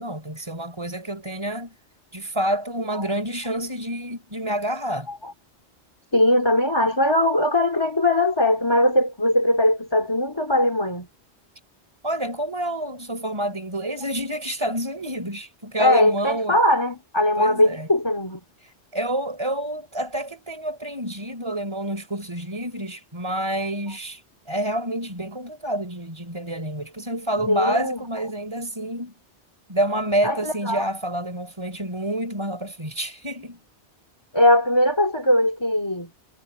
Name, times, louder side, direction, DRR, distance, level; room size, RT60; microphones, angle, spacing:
voice 1, 0.0-1.7 2.1-5.1 12.0-16.6 17.4-17.9 18.6-29.1 29.7-33.6, right 1 dB, 25° right, 4.8 m, -28 dB
voice 2, 6.1-11.1 15.8-18.4 27.5-28.0 30.2-30.8 34.3-36.1, left 1 dB, 20° left, 2.7 m, -20 dB
omnidirectional pair, 1.1 m